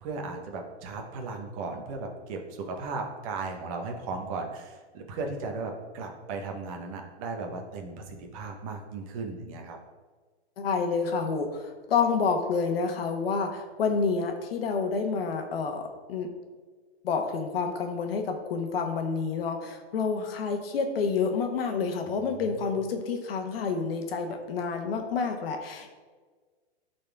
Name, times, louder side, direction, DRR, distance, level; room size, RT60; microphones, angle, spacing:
voice 1, 0.0-9.8 22.2-22.6, right 3 dB, 30° right, 2 dB, 1.1 m, -36 dB
voice 2, 10.6-16.3 17.0-25.9, left 5 dB, 60° left, 4 dB, 1.2 m, -29 dB
12.0 x 4.2 x 3.5 m, 1.4 s
hypercardioid pair, 160°, 33 cm